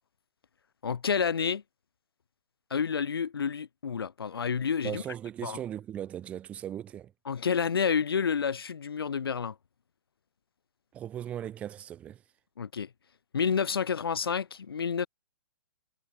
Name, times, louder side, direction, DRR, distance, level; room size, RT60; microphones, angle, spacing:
voice 1, 0.8-1.6 2.7-5.0 5.4-5.6 7.3-9.6 12.6-12.9 13.3-15.1, left 6 dB, 85° left, 2.1 m, -29 dB
voice 2, 4.8-7.1 10.9-12.2, right 10 dB, 10° right, 3.5 m, -38 dB
hypercardioid pair, 175°, 12 cm